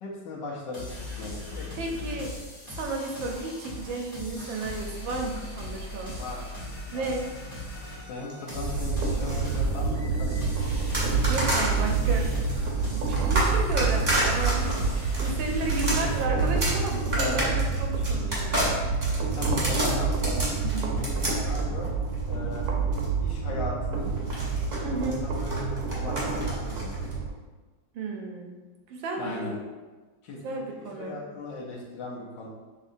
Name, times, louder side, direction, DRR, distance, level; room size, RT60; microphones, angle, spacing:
voice 1, 0.0-2.0 6.2-6.4 6.9-7.0 8.1-10.4 15.5-15.7 16.0-16.3 17.2-17.4 19.4-20.6 21.0-21.9 22.3-22.7 23.2-24.2 25.0-27.1 29.2-29.6 30.2-32.5, left 3 dB, 75° left, -4 dB, 1.3 m, -38 dB
sound 1, 0.7-16.2, left 1 dB, 15° left, 1.2 m, -39 dB
voice 2, 1.8-2.3 2.7-6.1 6.9-7.2 10.9-12.4 12.8-18.5 20.6-20.9 24.8-25.2 27.9-28.5 28.9-29.5 30.3-31.2, right 3 dB, 90° right, 1 dB, 1.4 m, -33 dB
sound 2, 8.3-9.6 10.9-11.8 12.5-23.1 24.2-27.1, right 1 dB, 30° right, 1.0 m, -31 dB
sound 3, 8.6-27.3, right 4 dB, 70° right, 1.0 m, -28 dB
5.3 x 2.8 x 2.6 m, 1.3 s
omnidirectional pair, 2.1 m